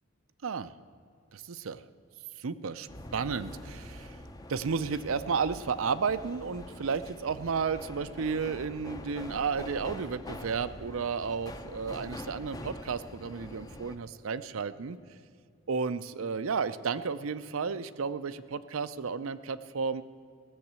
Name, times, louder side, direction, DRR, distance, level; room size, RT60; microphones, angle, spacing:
voice 1, 0.4-0.7 1.3-1.8 2.4-4.2 4.5-15.0 15.7-20.0, right 5 dB, 80° right, 14 dB, 0.5 m, -32 dB
sound 1, 2.9-14.0, left 1 dB, 15° left, 0.6 m, -44 dB
16.5 x 7.2 x 8.1 m, 2.3 s
head